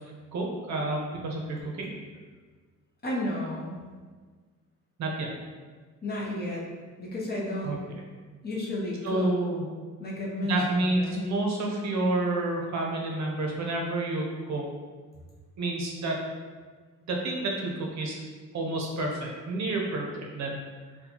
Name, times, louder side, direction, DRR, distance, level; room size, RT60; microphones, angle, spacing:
voice 1, 0.3-1.9 5.0-5.3 7.6-7.8 9.0-9.7 10.4-14.7 15.6-16.2 17.1-18.2 18.5-20.6, right 2 dB, 60° right, 0 dB, 0.6 m, -29 dB
voice 2, 3.0-3.8 6.0-6.6 7.0-7.7 8.4-9.3 10.0-11.2, left 1 dB, 30° left, -4 dB, 0.6 m, -32 dB
4.2 x 2.2 x 2.8 m, 1.5 s
wide cardioid pair, 160°, 31 cm